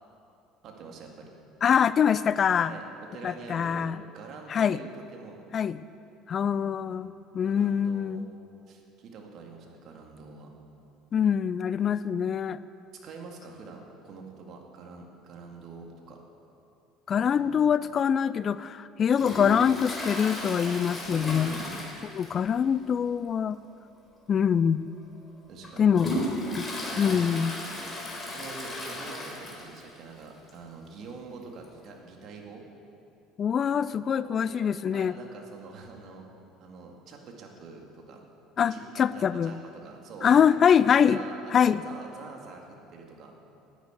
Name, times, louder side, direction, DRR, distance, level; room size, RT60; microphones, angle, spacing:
voice 1, 0.6-1.3 2.6-2.9 3.1-3.9 4.1-5.4 6.4-7.0 7.4-8.2 8.7-10.5 13.0-16.2 17.2-17.5 21.1-21.9 25.5-26.2 26.9-27.3 28.3-32.6 34.1-34.5 34.9-36.2 36.6-38.2 38.6-40.4 41.1-43.3, right 4 dB, 55° right, 1 dB, 2.2 m, -45 dB
voice 2, 1.6-2.7 3.2-4.0 4.5-4.8 5.5-5.8 6.3-8.3 11.1-12.6 17.1-21.5 22.2-23.6 24.3-24.9 25.8-26.1 27.0-27.5 33.4-35.1 38.6-39.5 40.2-41.2 41.5-41.8, left 7 dB, 40° left, 16 dB, 0.4 m, -24 dB
Toilet flush, 19.1-22.6 22.8-22.9 23.4-23.5 24.3-24.4 25.0-29.9 30.2-30.3 30.5-30.6 31.6-31.7, left 1 dB, 20° left, 4.0 m, -35 dB
11.0 x 9.5 x 8.2 m, 2.6 s
hypercardioid pair, 65°, 0 cm